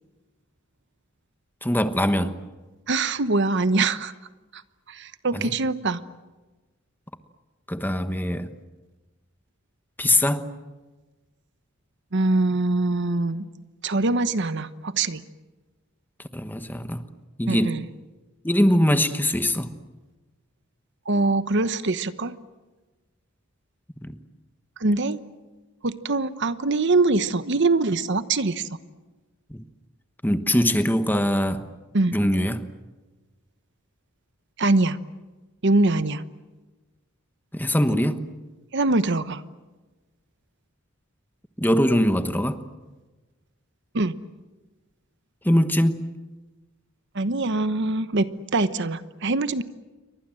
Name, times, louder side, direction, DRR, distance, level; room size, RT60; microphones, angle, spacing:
voice 1, 1.6-2.4 5.3-5.5 7.7-8.5 10.0-10.5 16.3-17.1 17.4-17.8 18.4-19.7 24.0-24.2 29.5-29.6 30.2-31.7 32.1-32.6 37.5-38.3 41.6-42.6 45.4-46.1, equal, 10° left, 9 dB, 1.2 m, -22 dB
voice 2, 2.9-4.1 4.5-4.6 4.9-6.0 12.1-13.4 13.8-15.2 17.5-17.8 21.1-22.4 24.8-25.2 25.8-28.7 31.9-32.2 34.6-35.0 35.6-36.2 38.7-39.4 43.9-44.2 47.1-49.6, right 2 dB, 60° right, 12 dB, 1.1 m, -23 dB
29.0 x 24.0 x 7.7 m, 1.2 s
head